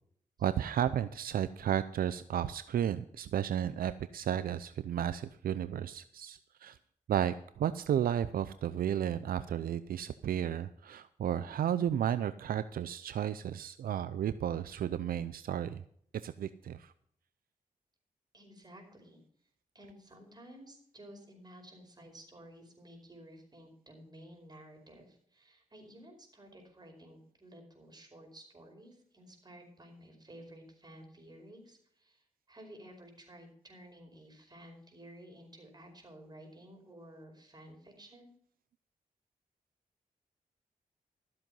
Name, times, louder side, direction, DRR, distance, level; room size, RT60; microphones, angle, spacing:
voice 1, 0.4-6.8 7.1-15.8 16.2-16.9, right 10 dB, 80° right, 13 dB, 0.5 m, -33 dB
voice 2, 18.3-19.2 19.7-38.3, right 1 dB, 30° right, 3 dB, 5.0 m, -53 dB
13.5 x 7.7 x 5.4 m, 0.64 s
cardioid pair, 65°, 15 cm